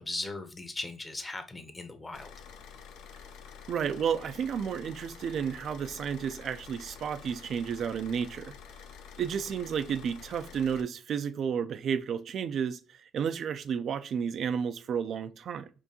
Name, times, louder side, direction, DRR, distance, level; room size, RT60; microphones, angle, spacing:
voice 1, 0.0-2.3, left 2 dB, 25° left, 0.8 m, -38 dB
Car / Idling, 2.1-10.8, left 7 dB, 80° left, 0.5 m, -48 dB
voice 2, 3.7-8.5 9.2-15.7, right 7 dB, 60° right, 0.3 m, -32 dB
4.5 x 2.6 x 2.8 m
supercardioid pair, 70°, 0 cm